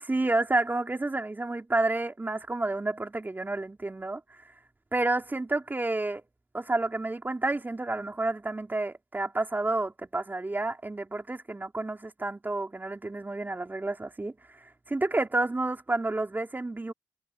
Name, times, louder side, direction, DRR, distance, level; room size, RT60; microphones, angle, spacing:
voice 1, 0.1-4.2 4.9-6.2 6.5-14.6 14.9-16.9, right 2 dB, 25° right, 3.9 m, -30 dB
cardioid pair, 60°, 7 cm